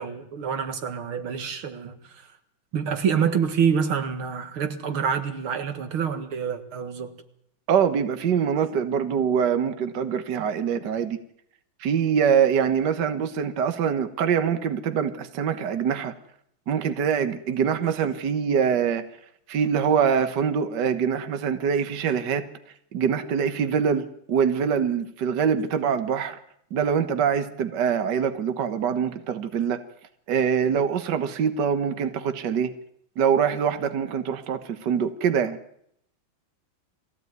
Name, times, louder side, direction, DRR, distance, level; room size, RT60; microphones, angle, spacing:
voice 1, 0.0-2.3 2.7-7.1, right 7 dB, 90° right, 2.6 m, -27 dB
voice 2, 7.7-11.2 11.8-16.1 16.7-19.0 19.5-22.5 22.9-26.4 26.7-29.8 30.3-32.7 33.2-35.6, right 7 dB, 60° right, 1.8 m, -24 dB
22.0 x 16.0 x 9.4 m
omnidirectional pair, 2.2 m